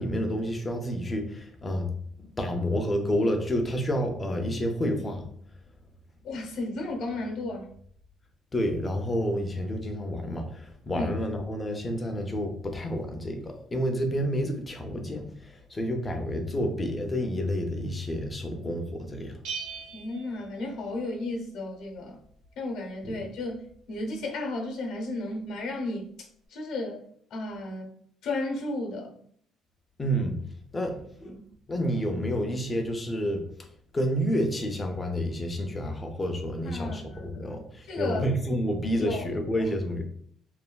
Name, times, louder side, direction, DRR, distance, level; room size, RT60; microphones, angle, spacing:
voice 1, 0.0-1.9 2.2-5.3 8.5-19.4 23.0-23.1 30.0-30.4 30.7-31.3 31.7-33.5 33.9-40.0, equal, 20° left, 4 dB, 0.4 m, -29 dB
voice 2, 6.2-7.7 10.9-11.1 16.2-16.3 19.9-22.2 22.6-26.1 26.5-27.9 28.2-29.1 31.2-31.4 36.6-37.4 37.9-38.3 39.0-39.2 39.6-39.7, left 2 dB, 75° left, 2 dB, 0.7 m, -34 dB
Bell, 19.4-21.3, right 6 dB, 85° right, 0.6 m, -40 dB
3.2 x 2.2 x 2.2 m, 0.62 s
cardioid pair, 150°, 0 cm